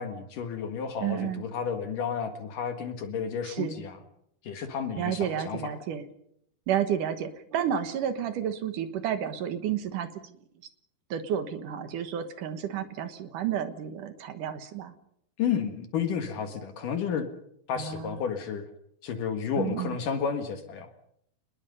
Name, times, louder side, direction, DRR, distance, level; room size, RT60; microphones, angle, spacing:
voice 1, 0.0-4.0 4.4-5.7 15.4-17.3 17.7-18.6 19.0-20.9, left 7 dB, 60° left, 7 dB, 2.9 m, -31 dB
voice 2, 1.0-1.4 3.5-3.8 5.0-6.0 6.7-10.3 11.1-14.9 17.7-18.2 19.6-20.0, right 9 dB, 65° right, 10 dB, 2.4 m, -31 dB
27.5 x 21.0 x 5.4 m, 0.73 s
omnidirectional pair, 4.8 m